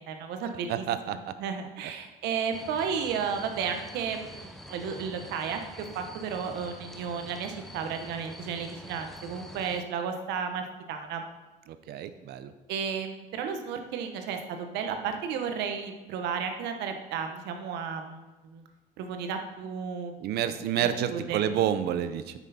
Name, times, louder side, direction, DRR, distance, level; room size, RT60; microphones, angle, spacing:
voice 1, 0.0-11.2 12.7-18.6 19.0-20.1 20.8-21.5, right 6 dB, 90° right, 6 dB, 1.1 m, -33 dB
voice 2, 0.7-1.2 11.7-12.5 20.2-22.3, right 10 dB, 75° right, 11 dB, 0.6 m, -29 dB
sound 1, 2.5-9.8, left 1 dB, ahead, 0.6 m, -46 dB
8.9 x 6.3 x 4.2 m, 1.1 s
cardioid pair, 110°, 17 cm